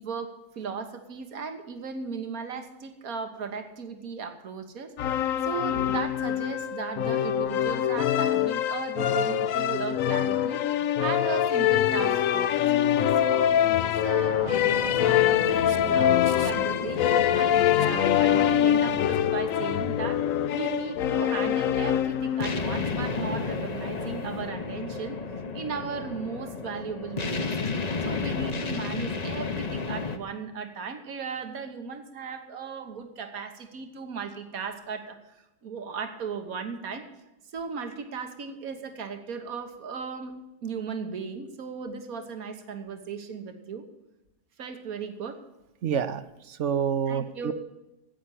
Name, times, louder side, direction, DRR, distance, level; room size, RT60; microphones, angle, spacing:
voice 1, 0.0-10.6 11.0-12.9 13.2-16.2 16.4-25.2 25.5-27.7 28.0-37.1 37.5-40.3 40.6-43.9 44.6-45.4 47.1-47.5, right 5 dB, 80° right, 7 dB, 1.8 m, -36 dB
sound 1, 5.0-22.7, left 10 dB, 75° left, 1.0 m, -24 dB
sound 2, 13.1-30.2, left 4 dB, 35° left, 0.8 m, -34 dB
voice 2, 45.8-46.2 46.5-47.5, right 7 dB, 60° right, 12 dB, 1.0 m, -28 dB
10.0 x 9.0 x 9.8 m, 0.97 s
omnidirectional pair, 1.5 m